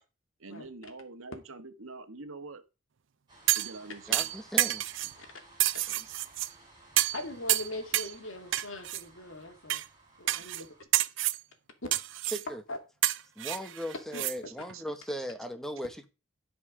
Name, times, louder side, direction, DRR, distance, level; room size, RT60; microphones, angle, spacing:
voice 1, 0.4-2.6 3.5-4.3 10.5-10.6 11.0-11.1 14.4-14.8, right 3 dB, 80° right, 1.4 m, -45 dB
sound 1, 3.3-10.8, right 2 dB, 20° right, 5.7 m, -57 dB
sound 2, 3.5-3.8 4.1-5.1 5.6-6.5 7.0-7.2 7.5-8.1 8.5-9.0 9.7-9.9 10.3-10.6 10.9-11.4 11.9-12.4 13.0-14.4 14.7-14.8, right 15 dB, 65° right, 0.6 m, -28 dB
voice 2, 4.1-4.8 5.9-6.0 12.3-12.6 13.4-16.1, equal, ahead, 1.2 m, -38 dB
voice 3, 7.1-9.9 10.2-10.7 12.7-12.8 14.1-14.3, left 1 dB, 70° left, 2.3 m, -40 dB
15.5 x 5.3 x 4.9 m
head